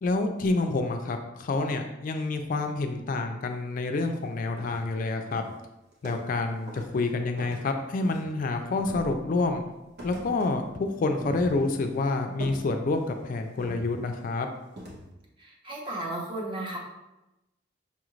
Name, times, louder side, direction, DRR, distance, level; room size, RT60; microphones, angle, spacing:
voice 1, 0.0-5.4 6.0-9.6 10.0-14.5, left 3 dB, 45° left, 5 dB, 0.3 m, -28 dB
sound 1, 3.9-4.1 4.6-5.0 5.3-6.4 6.7-7.0 7.4-8.4 8.8-9.5 10.0-10.6 10.9-11.9 12.4-13.1 13.6-14.3 14.8-15.1, right 1 dB, 60° right, 1.0 m, -42 dB
voice 2, 15.4-16.8, right 1 dB, 25° right, -2 dB, 0.8 m, -34 dB
5.5 x 2.5 x 3.0 m, 0.97 s
head